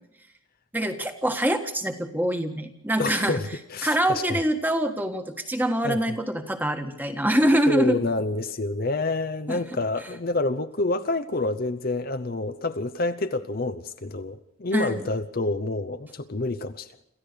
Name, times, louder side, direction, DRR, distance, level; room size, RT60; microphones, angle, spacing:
voice 1, 0.7-3.4 3.8-8.0 9.5-9.6 14.7-15.0, right 1 dB, 10° right, 1.5 m, -24 dB
voice 2, 3.0-4.4 5.8-6.2 7.7-16.9, left 2 dB, 45° left, 0.7 m, -28 dB
27.0 x 14.5 x 6.8 m
head